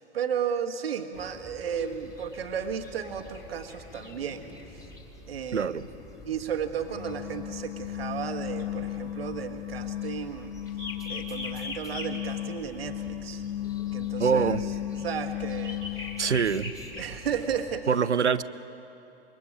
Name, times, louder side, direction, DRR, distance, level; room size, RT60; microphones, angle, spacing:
voice 1, 0.0-4.9 5.3-5.8 6.2-10.5 11.1-13.4 13.9-14.5 14.9-16.1 16.3-16.5 16.9-17.9, right 8 dB, 60° right, 5 dB, 1.5 m, -34 dB
sound 1, 1.1-17.8, left 2 dB, 10° left, 2.4 m, -44 dB
voice 2, 5.5-5.9 14.2-14.6 16.2-16.7 17.9-18.4, right 6 dB, 80° right, 17 dB, 0.7 m, -24 dB
sound 2, 6.9-16.6, left 13 dB, 45° left, 1.5 m, -35 dB
26.5 x 23.0 x 5.1 m, 2.9 s
figure-of-eight pair, 110°, 34 cm